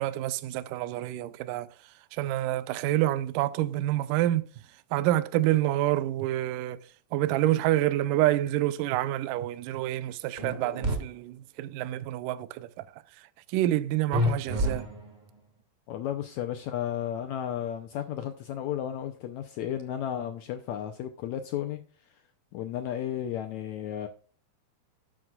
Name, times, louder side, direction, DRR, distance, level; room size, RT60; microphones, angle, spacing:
voice 1, 0.0-1.7 2.1-4.4 4.9-6.8 7.1-12.7 13.5-14.9, right 14 dB, 80° right, 2.1 m, -27 dB
sound 1, 10.4-11.0 14.1-15.3, left 1 dB, 30° right, 0.8 m, -28 dB
voice 2, 15.9-21.8 22.5-24.1, left 10 dB, 80° left, 1.6 m, -33 dB
12.0 x 7.8 x 2.4 m
omnidirectional pair, 4.1 m